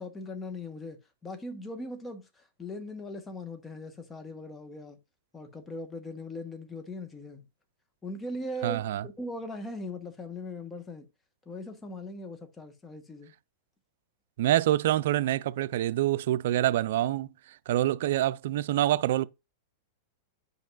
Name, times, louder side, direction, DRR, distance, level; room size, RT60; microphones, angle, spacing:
voice 1, 0.0-2.2 2.6-5.0 5.3-7.5 8.0-11.1 11.5-13.3, left 1 dB, 15° left, 1.2 m, -39 dB
voice 2, 8.6-9.1 14.4-19.3, right 13 dB, 70° right, 0.4 m, -26 dB
9.6 x 5.4 x 2.4 m
hypercardioid pair, 135°, 0 cm